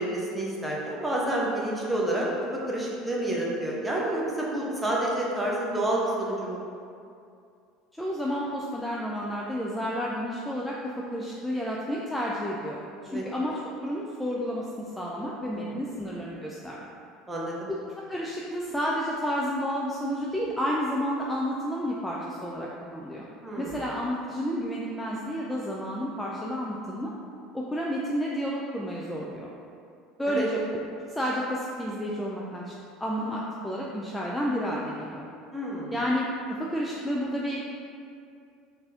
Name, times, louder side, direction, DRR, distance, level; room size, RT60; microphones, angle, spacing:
voice 1, 0.0-2.3 2.7-6.6 13.1-13.2 15.5-15.6 17.3-17.7 23.4-23.8 30.3-30.5 35.5-35.9, right 1 dB, 10° right, -4 dB, 0.9 m, -29 dB
voice 2, 7.9-16.9 17.7-23.3 23.6-27.1 27.5-29.5 30.2-30.6 31.1-32.7 33.0-35.3 35.9-37.6, equal, 5° left, -4 dB, 0.4 m, -31 dB
3.9 x 2.7 x 3.7 m, 2.5 s
figure-of-eight pair, 70°, 0 cm